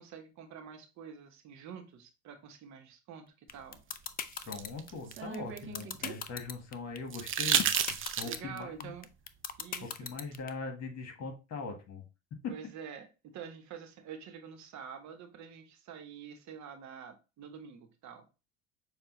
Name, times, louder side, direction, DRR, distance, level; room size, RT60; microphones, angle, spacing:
voice 1, 0.0-3.8 8.2-9.1 9.6-10.0 12.5-18.3, right 7 dB, 50° right, 1.0 m, -47 dB
sound 1, 3.5-10.5, left 8 dB, 25° left, 0.4 m, -37 dB
sound 2, 3.9-6.2 7.1-8.6 10.3-10.4, right 9 dB, 35° right, 0.6 m, -32 dB
voice 2, 4.5-8.9 9.8-12.0, left 4 dB, 45° left, 1.7 m, -41 dB
6.5 x 2.4 x 3.1 m
supercardioid pair, 85°, 35 cm